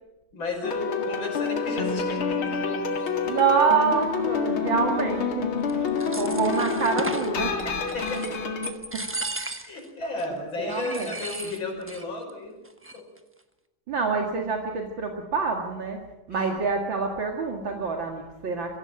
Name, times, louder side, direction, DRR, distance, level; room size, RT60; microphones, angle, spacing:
voice 1, 0.3-2.6 7.6-8.6 9.6-12.6 12.9-13.1 16.3-16.5, left 2 dB, 70° left, 2 dB, 6.2 m, -34 dB
sound 1, 0.6-8.7, left 5 dB, 85° left, 2.9 m, -28 dB
voice 2, 3.2-5.5 5.8-7.6 8.9-9.0 10.6-11.2 13.9-16.0 16.3-18.8, right 5 dB, 65° right, 2 dB, 2.7 m, -26 dB
sound 2, 5.7-7.3 7.9-8.4 8.6-9.9 10.2-10.3 10.7-12.0 12.3-12.4 12.7-13.2, right 2 dB, 10° right, 0.8 m, -35 dB
23.5 x 16.0 x 8.9 m, 1.0 s
omnidirectional pair, 2.2 m